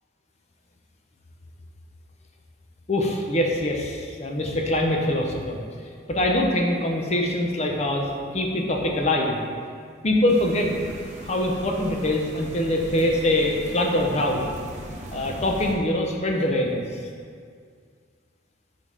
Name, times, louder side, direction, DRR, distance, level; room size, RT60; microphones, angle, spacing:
voice 1, 2.9-5.6 6.1-9.4 10.0-10.7 11.2-14.4 15.1-16.8, left 1 dB, 35° left, 1 dB, 0.6 m, -23 dB
sound 1, 10.3-15.7, right 1 dB, 35° right, 0.7 m, -39 dB
5.1 x 4.1 x 5.0 m, 2.1 s
head